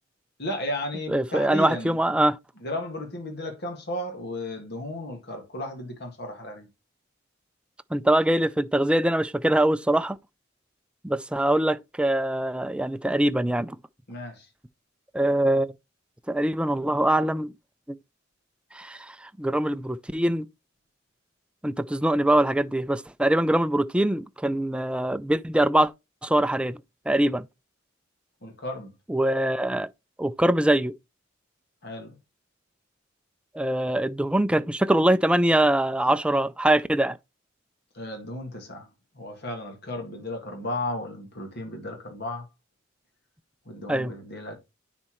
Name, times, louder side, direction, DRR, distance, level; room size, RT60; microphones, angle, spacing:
voice 1, 0.4-2.0 2.6-6.7 14.1-14.5 28.4-28.9 31.8-32.2 37.9-38.9 39.2-42.5 43.7-44.6, left 1 dB, 55° left, 1.9 m, -34 dB
voice 2, 1.1-2.4 7.9-10.2 11.0-13.8 15.1-15.7 16.3-17.5 18.7-19.1 19.4-20.5 21.6-25.9 26.2-26.8 27.1-27.5 29.1-29.9 30.2-30.9 33.5-37.2 43.9-44.1, right 1 dB, 5° right, 0.3 m, -23 dB
9.9 x 4.3 x 3.0 m
head